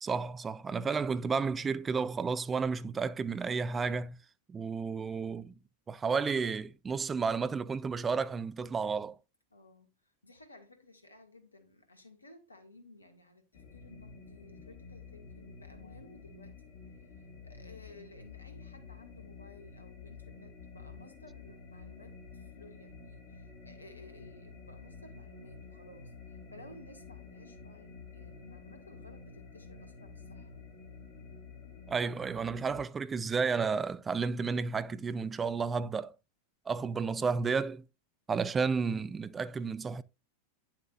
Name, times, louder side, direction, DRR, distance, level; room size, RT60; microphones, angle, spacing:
voice 1, 0.0-4.2 4.5-5.5 5.9-9.1 31.9-36.1 36.7-37.8 38.3-40.0, right 5 dB, 15° right, 0.5 m, -32 dB
voice 2, 9.5-30.5, left 2 dB, 80° left, 1.9 m, -56 dB
sound 1, 13.5-32.8, left 4 dB, 45° left, 2.0 m, -50 dB
9.8 x 7.3 x 2.6 m
figure-of-eight pair, 90°, 0 cm